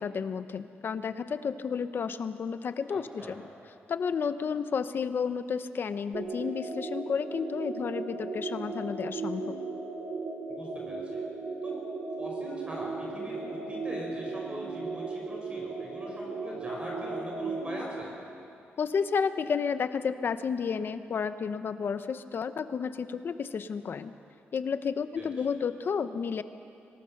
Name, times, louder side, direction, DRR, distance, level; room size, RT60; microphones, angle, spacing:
voice 1, 0.0-3.4 3.9-9.5 18.8-24.1 24.5-26.4, left 6 dB, 55° left, 11 dB, 0.8 m, -31 dB
voice 2, 2.9-3.4 10.5-11.2 11.6-11.8 12.2-18.1 25.2-25.5, equal, 25° right, -2 dB, 5.5 m, -42 dB
sound 1, 6.1-18.0, right 3 dB, 70° right, 3.0 m, -36 dB
25.0 x 19.5 x 6.6 m, 2.6 s
wide cardioid pair, 135°, 4 cm